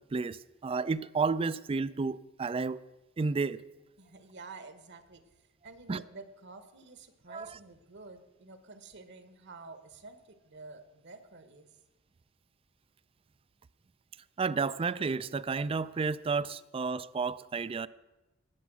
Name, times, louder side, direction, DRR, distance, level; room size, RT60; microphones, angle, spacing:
voice 1, 0.6-2.8 3.2-3.6 5.9-6.0 7.3-7.5 14.4-17.9, right 4 dB, 25° right, 0.3 m, -31 dB
voice 2, 4.0-11.7, right 3 dB, 55° right, 1.2 m, -50 dB
19.5 x 7.2 x 6.1 m
head